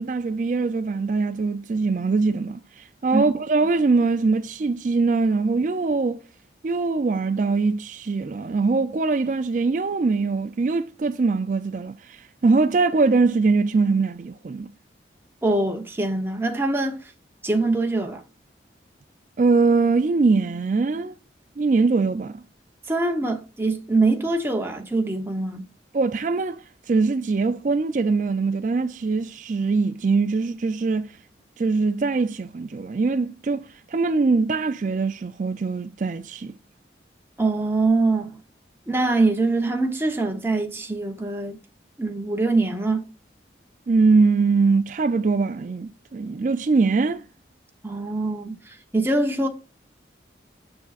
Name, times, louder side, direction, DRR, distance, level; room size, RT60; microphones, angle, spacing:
voice 1, 0.0-6.2 6.6-14.7 19.4-21.2 21.6-22.4 25.9-31.2 31.6-36.5 43.9-47.3, right 4 dB, 45° right, 0.4 m, -22 dB
voice 2, 15.4-17.0 17.4-18.2 22.9-25.6 37.4-38.4 38.9-41.6 42.0-43.1 47.8-49.5, right 2 dB, 15° right, 0.9 m, -23 dB
6.9 x 6.9 x 2.4 m
head